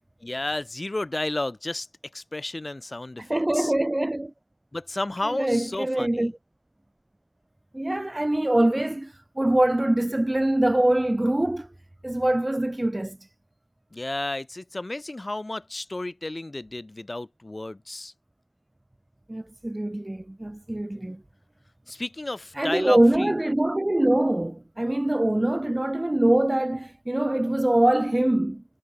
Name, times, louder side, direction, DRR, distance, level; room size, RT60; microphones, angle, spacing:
voice 1, 0.2-1.9 2.1-3.7 4.7-6.3 13.9-18.1 21.9-23.3, left 2 dB, 25° left, 1.0 m, -32 dB
voice 2, 3.2-4.3 5.2-6.3 7.7-11.7 12.0-13.2 19.3-21.2 22.6-28.6, right 1 dB, 20° right, 0.4 m, -23 dB
wide cardioid pair, 70°, 0 cm